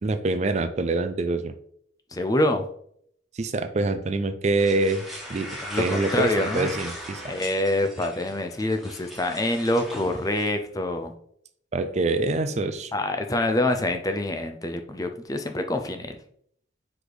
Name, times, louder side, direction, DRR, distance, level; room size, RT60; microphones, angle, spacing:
voice 1, 0.0-1.5 3.3-5.0 5.3-5.5 5.8-7.4 11.7-12.9, right 3 dB, 35° right, 10 dB, 0.4 m, -25 dB
voice 2, 2.1-2.7 5.7-6.7 7.3-11.1 12.9-16.1, left 1 dB, 20° left, 6 dB, 0.5 m, -26 dB
sound 1, 4.6-10.5, equal, ahead, 1.4 m, -38 dB
4.8 x 4.1 x 5.0 m, 0.65 s
head